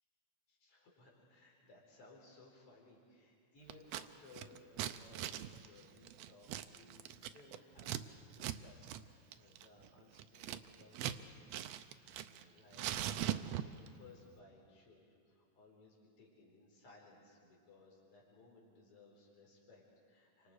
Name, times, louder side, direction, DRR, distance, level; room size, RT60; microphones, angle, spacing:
voice 1, 0.5-20.5, left 3 dB, 45° left, -2 dB, 5.1 m, -62 dB
Scissors, 3.7-4.1 4.3-8.0 8.3-8.6 8.8-9.0 9.3-11.2 11.5-12.4 12.7-13.9, right 12 dB, 80° right, 1.5 m, -41 dB
29.5 x 25.5 x 4.9 m, 2.2 s
omnidirectional pair, 3.7 m